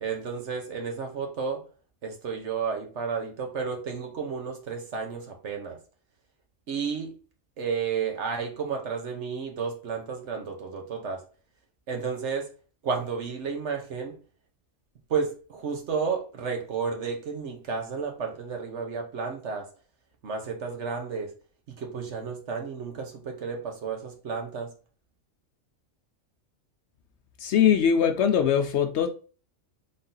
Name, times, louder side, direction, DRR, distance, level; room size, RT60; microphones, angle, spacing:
voice 1, 0.0-1.6 2.0-5.8 6.7-7.2 7.6-11.2 11.9-12.5 12.8-14.1 15.1-19.7 20.2-21.3 21.7-24.7, right 5 dB, 65° right, 1.2 m, -32 dB
voice 2, 27.4-29.1, left 8 dB, 65° left, 0.8 m, -21 dB
3.9 x 2.8 x 3.7 m
omnidirectional pair, 1.3 m